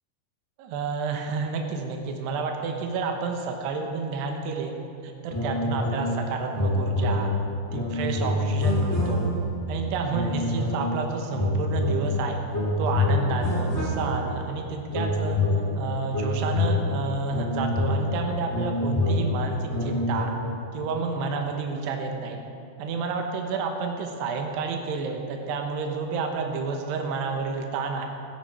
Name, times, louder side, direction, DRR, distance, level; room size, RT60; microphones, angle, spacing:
voice 1, 0.6-4.7 5.0-7.3 7.7-9.4 9.7-12.4 12.8-15.4 15.8-20.3 20.7-22.4 22.8-28.1, right 4 dB, 90° right, 3 dB, 3.1 m, -30 dB
sound 1, 5.3-6.2 6.5-9.6 10.1-11.0 11.3-14.4 14.9-20.2, left 2 dB, 5° left, 1.9 m, -26 dB
19.0 x 10.5 x 4.3 m, 2.6 s
omnidirectional pair, 4.7 m